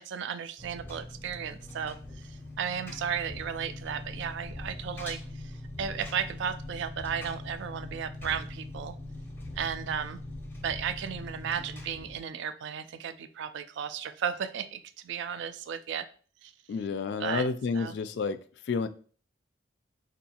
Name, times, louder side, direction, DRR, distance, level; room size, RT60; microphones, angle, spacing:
voice 1, 0.0-9.0 9.6-10.2 10.6-16.1 16.4-16.5 17.2-17.5 17.7-18.0, right 8 dB, 75° right, 11 dB, 0.3 m, -35 dB
Engine, 0.6-12.2, left 1 dB, 10° left, 0.6 m, -42 dB
voice 2, 16.7-18.4 18.7-18.9, left 4 dB, 65° left, 11 dB, 0.3 m, -30 dB
4.5 x 2.5 x 2.8 m, 0.42 s
head